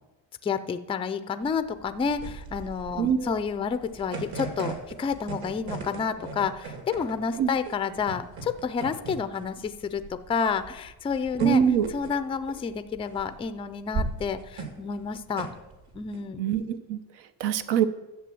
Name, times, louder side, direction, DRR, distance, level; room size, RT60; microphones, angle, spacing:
voice 1, 0.4-10.0 10.3-11.6 11.9-15.5 15.9-16.4, left 6 dB, 15° left, 11 dB, 0.3 m, -30 dB
sound 1, 1.4-16.2, right 4 dB, 55° right, 2.6 m, -38 dB
voice 2, 3.0-3.3 7.4-7.5 11.4-11.9 16.4-17.0 17.4-17.9, right 8 dB, 85° right, 12 dB, 1.0 m, -23 dB
12.0 x 7.5 x 7.7 m, 1.0 s
cardioid pair, 170°, 44 cm